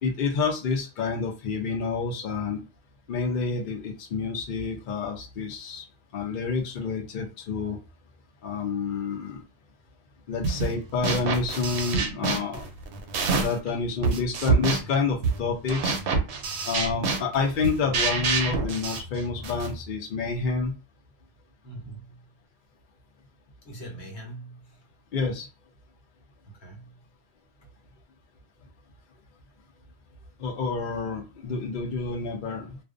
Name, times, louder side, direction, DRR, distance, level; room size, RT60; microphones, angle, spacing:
voice 1, 0.0-2.6 3.1-5.8 6.1-7.8 8.4-9.4 10.3-12.7 13.3-16.0 16.6-20.8 25.1-25.5 30.4-32.8, left 4 dB, 55° left, 0.7 m, -28 dB
sound 1, 10.4-10.7 11.0-13.7 14.0-19.7, right 4 dB, 75° right, 0.8 m, -27 dB
voice 2, 21.6-22.4 23.6-24.9 26.5-27.1 27.6-27.7, right 2 dB, 70° left, 1.2 m, -43 dB
2.4 x 2.1 x 2.4 m
omnidirectional pair, 1.2 m